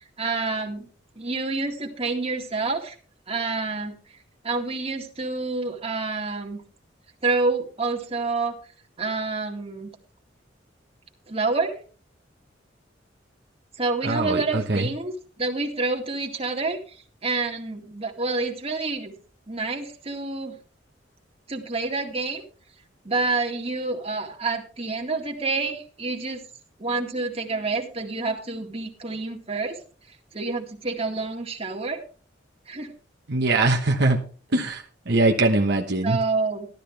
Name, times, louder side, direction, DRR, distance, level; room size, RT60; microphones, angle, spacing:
voice 1, 0.2-0.9 1.2-3.0 3.3-3.9 4.4-6.6 7.2-8.6 9.0-9.9 11.3-11.8 13.8-19.1 19.5-20.6 21.5-22.4 23.0-26.4 26.8-29.8 30.3-32.0 32.7-32.9 36.0-36.7, right 3 dB, 35° right, 2 dB, 2.1 m, -28 dB
voice 2, 14.0-14.9 33.3-34.2 34.5-36.2, right 2 dB, 60° right, 2 dB, 1.2 m, -22 dB
13.5 x 12.5 x 3.4 m, 0.39 s
head